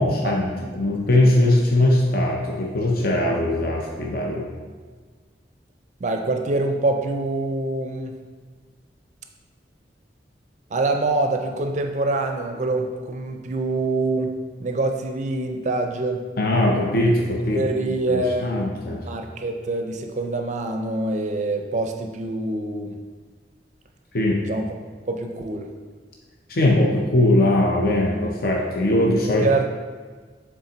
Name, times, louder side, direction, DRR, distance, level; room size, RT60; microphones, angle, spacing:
voice 1, 0.0-4.5 16.4-17.6 18.1-19.0 24.1-24.4 26.5-29.5, left 1 dB, 55° left, -1 dB, 0.6 m, -20 dB
voice 2, 6.0-8.1 10.7-14.3 14.6-16.2 17.5-18.7 19.0-23.0 24.5-24.7 25.1-25.7 29.4-29.7, right 2 dB, 40° right, 4 dB, 0.4 m, -25 dB
7.1 x 3.6 x 3.9 m, 1.5 s
head